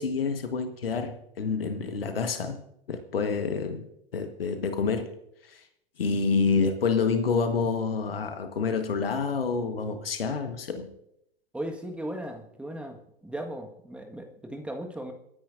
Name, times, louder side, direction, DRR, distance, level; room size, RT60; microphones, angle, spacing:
voice 1, 0.0-2.6 2.9-3.8 4.1-5.1 5.5-5.6 6.0-10.9, left 5 dB, 70° left, 1.4 m, -28 dB
voice 2, 11.5-15.1, right 1 dB, 5° right, 1.6 m, -37 dB
29.5 x 10.0 x 2.6 m
figure-of-eight pair, 95°, 30 cm